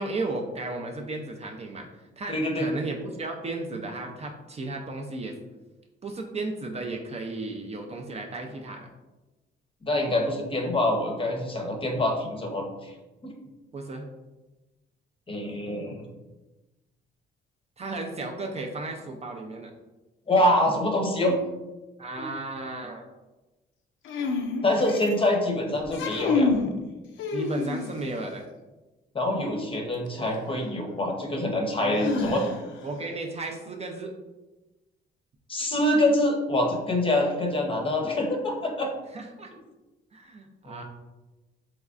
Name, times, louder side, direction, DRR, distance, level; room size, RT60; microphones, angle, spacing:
voice 1, 0.0-5.4 6.0-8.9 13.7-14.1 17.8-19.7 22.0-23.0 27.3-28.4 31.8-32.1 32.8-34.2 37.2-37.3 39.1-39.5 40.1-40.8, right 2 dB, 30° right, 2 dB, 0.4 m, -34 dB
voice 2, 2.3-2.7 9.8-12.9 13.2-13.3 15.3-16.0 20.3-21.4 22.2-22.3 24.6-26.5 29.1-32.5 35.5-38.9 40.7-40.8, left 1 dB, 25° left, 2 dB, 0.7 m, -25 dB
sound 1, 24.0-25.3 25.8-26.7 27.2-28.1 30.1-30.2 32.0-32.8, left 4 dB, 80° left, 0.5 m, -28 dB
3.5 x 3.1 x 2.4 m, 1.1 s
cardioid pair, 90°, 20 cm